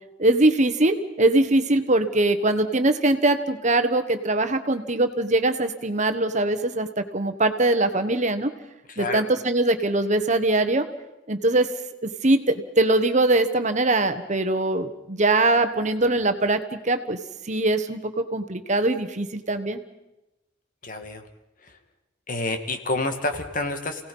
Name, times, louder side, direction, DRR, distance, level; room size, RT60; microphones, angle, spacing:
voice 1, 0.2-6.9 7.1-8.5 9.0-10.9 11.3-11.7 12.0-17.2 17.5-19.8, right 2 dB, 40° right, 9 dB, 1.3 m, -22 dB
voice 2, 8.9-9.2 20.8-21.2 21.6-21.8 22.3-24.1, left 2 dB, 45° left, 6 dB, 2.1 m, -29 dB
29.0 x 18.0 x 5.5 m, 0.94 s
head